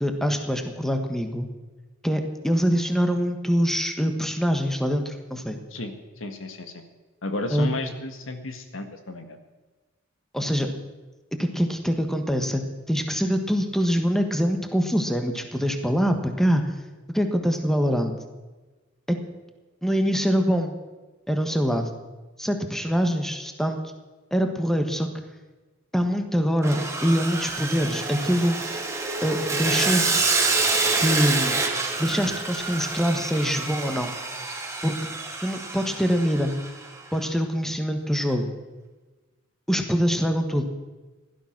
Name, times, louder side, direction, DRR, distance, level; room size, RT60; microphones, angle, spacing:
voice 1, 0.0-1.5 2.0-5.6 7.5-7.7 10.3-10.7 11.4-12.6 12.9-16.7 17.1-18.1 19.1-19.2 19.8-20.7 21.3-21.9 22.4-23.8 24.3-25.1 25.9-28.8 29.2-30.2 31.0-31.6 32.0-34.1 34.8-35.0 35.4-36.5 37.1-38.5 39.7-40.6, equal, ahead, 6 dB, 1.3 m, -24 dB
voice 2, 5.7-6.7 7.2-9.4, left 2 dB, 90° left, 7 dB, 1.8 m, -33 dB
Sawing, 26.6-36.9, right 3 dB, 15° right, 1.8 m, -27 dB
16.0 x 12.5 x 6.0 m, 1.2 s
head